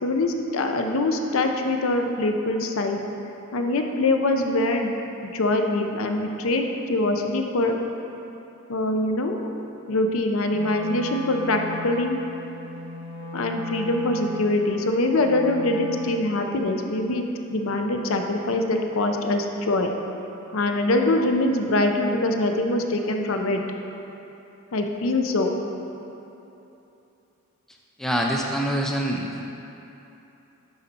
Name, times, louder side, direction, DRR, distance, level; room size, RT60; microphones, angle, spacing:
voice 1, 0.0-3.0 3.5-4.9 5.2-7.8 8.7-9.5 9.9-12.2 13.3-19.9 20.5-23.6 24.7-25.6, left 2 dB, 65° left, 4 dB, 0.6 m, -23 dB
Wind instrument woodwind instrument, 10.5-16.5, left 1 dB, 25° right, 1.0 m, -36 dB
voice 2, 28.0-29.5, equal, ahead, -1 dB, 0.3 m, -25 dB
10.5 x 4.1 x 4.2 m, 3.0 s
head